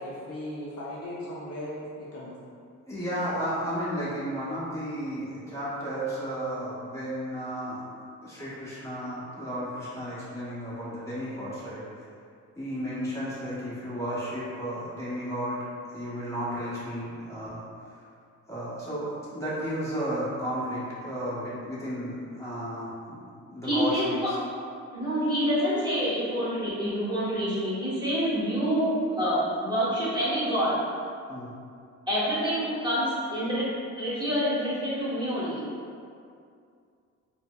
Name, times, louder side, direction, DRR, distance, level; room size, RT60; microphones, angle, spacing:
voice 1, 0.0-1.8 2.1-2.3 3.3-3.4, left 1 dB, 50° left, -7 dB, 0.7 m, -37 dB
voice 2, 2.9-7.8 8.2-12.0 12.6-15.6 15.9-18.0 18.5-23.2 23.5-24.4 31.3-31.5, equal, 10° left, -10 dB, 1.3 m, -33 dB
voice 3, 23.6-24.1 24.9-30.7 32.1-33.7 34.0-35.6, equal, 15° right, -10 dB, 1.5 m, -27 dB
4.3 x 2.2 x 2.4 m, 2.3 s
cardioid pair, 90°, 30 cm